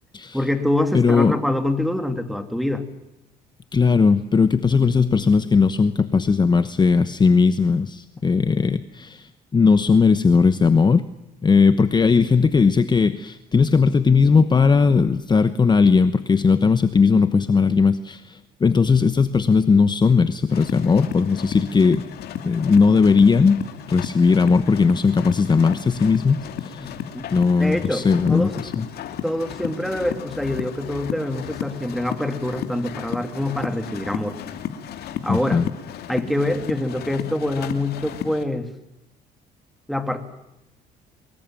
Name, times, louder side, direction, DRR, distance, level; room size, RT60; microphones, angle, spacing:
voice 1, 0.3-2.8 26.8-28.5 29.2-34.4 35.2-35.6 36.1-38.7 39.9-40.2, left 1 dB, ahead, 8 dB, 2.8 m, -25 dB
voice 2, 0.9-1.3 3.7-11.0 11.4-22.0 22.4-23.6 23.9-27.0 27.3-28.9 35.3-35.7, left 5 dB, 25° left, 12 dB, 1.0 m, -18 dB
sound 1, 20.5-38.4, left 9 dB, 70° left, 2.6 m, -34 dB
24.0 x 21.5 x 9.1 m, 0.88 s
cardioid pair, 110°, 17 cm